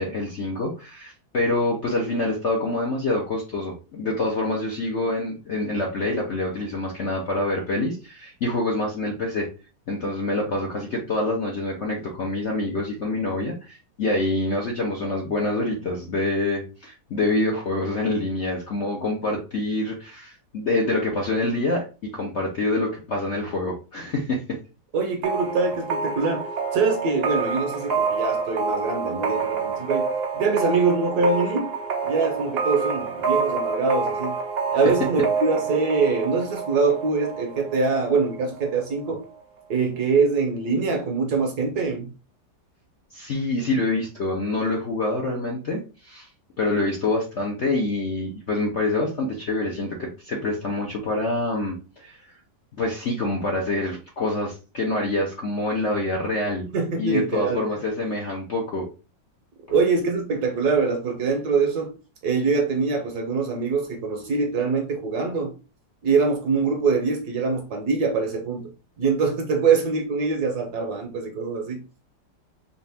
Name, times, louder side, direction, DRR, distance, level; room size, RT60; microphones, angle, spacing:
voice 1, 0.0-9.5 9.9-24.6 43.1-46.3 46.6-52.2 52.8-56.7 57.0-58.9 59.7-59.8, left 2 dB, 55° left, 0.8 m, -26 dB
voice 2, 24.9-30.1 30.3-31.8 32.0-34.4 34.7-39.2 39.7-42.1 56.7-57.6 59.7-61.9 62.2-65.5 66.0-68.7 69.0-71.8, right 4 dB, 65° right, 1.1 m, -24 dB
sound 1, 25.2-38.7, right 5 dB, 80° right, 0.5 m, -28 dB
4.3 x 2.5 x 3.4 m
omnidirectional pair, 2.1 m